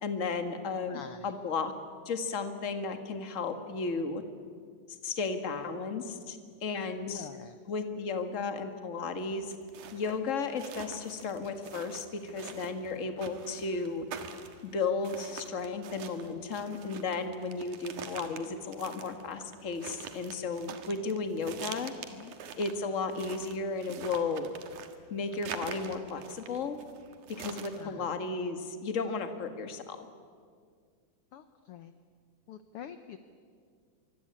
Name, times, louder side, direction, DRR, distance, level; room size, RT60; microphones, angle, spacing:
voice 1, 0.0-1.7 2.0-4.2 5.0-7.3 7.7-9.5 9.9-14.0 14.6-21.9 22.6-24.5 25.1-26.8 27.3-30.0, left 4 dB, 35° left, 7 dB, 1.5 m, -34 dB
voice 2, 0.9-1.3 6.9-7.6 22.1-22.3 25.3-25.4 27.7-28.0 31.3-31.9 32.5-33.2, left 9 dB, 70° left, 10 dB, 1.4 m, -46 dB
sound 1, 9.3-27.8, right 7 dB, 80° right, 3.0 m, -45 dB
24.5 x 24.0 x 8.7 m, 2.1 s
omnidirectional pair, 3.6 m